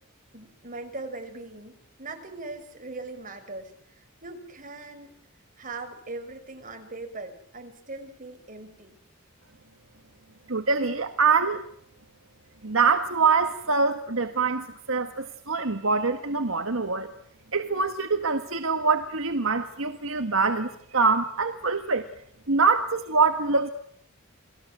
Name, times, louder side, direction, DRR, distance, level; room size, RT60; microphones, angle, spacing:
voice 1, 0.3-5.1 5.6-9.0, right 3 dB, 40° right, 6.0 m, -40 dB
voice 2, 10.5-11.6 12.6-17.1 17.5-22.1 22.5-23.7, right 4 dB, 70° right, 1.8 m, -24 dB
29.5 x 21.0 x 7.7 m
head